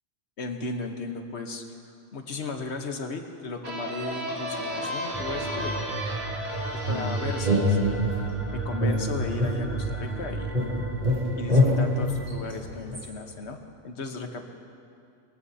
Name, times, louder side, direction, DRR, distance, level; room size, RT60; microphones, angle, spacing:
voice 1, 0.4-1.6 2.1-5.9 6.9-8.0 8.5-10.6 11.4-13.6 13.8-14.5, left 3 dB, 70° left, 4 dB, 1.4 m, -36 dB
sound 1, 3.6-9.1, equal, 65° right, 3.6 m, -35 dB
sound 2, 5.1-12.5, right 3 dB, 15° right, 0.6 m, -34 dB
sound 3, 6.9-8.3 8.8-10.2 10.5-13.1, left 1 dB, 45° right, 3.2 m, -25 dB
23.0 x 15.0 x 2.8 m, 2.4 s
omnidirectional pair, 1.2 m